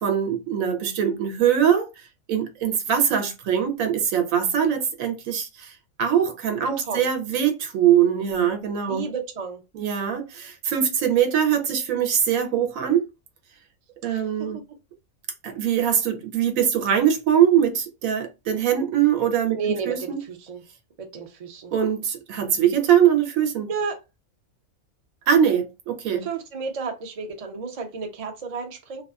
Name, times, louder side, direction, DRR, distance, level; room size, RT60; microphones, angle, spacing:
voice 1, 0.0-1.9 2.3-5.7 6.0-9.1 9.7-13.0 14.0-14.6 15.4-19.6 19.9-20.2 21.7-23.7 25.3-26.3, right 9 dB, 80° right, 1.0 m, -22 dB
voice 2, 6.5-7.1 8.7-9.6 14.0-14.6 19.5-20.6 21.0-21.7 23.7-24.0 26.2-29.0, right 5 dB, 50° right, 0.4 m, -32 dB
2.5 x 2.3 x 2.3 m
omnidirectional pair, 1.4 m